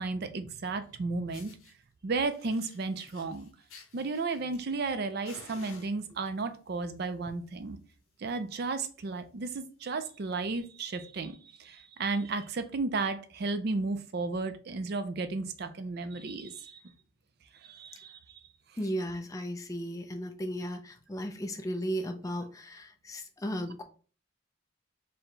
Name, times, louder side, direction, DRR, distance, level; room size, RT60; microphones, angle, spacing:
voice 1, 0.0-1.6 2.0-3.5 3.9-7.8 8.2-16.8 17.5-18.4, right 3 dB, 45° right, 0.4 m, -34 dB
Fire, 0.8-0.9 1.3-1.7 2.3-4.9 5.2-6.4 7.2-7.5 7.8-7.9 8.3-8.4 8.6-8.9 9.4-9.5 10.4-10.5, left 4 dB, 70° left, 1.1 m, -53 dB
voice 2, 18.8-23.8, equal, 15° left, 0.4 m, -35 dB
4.4 x 2.1 x 3.8 m
head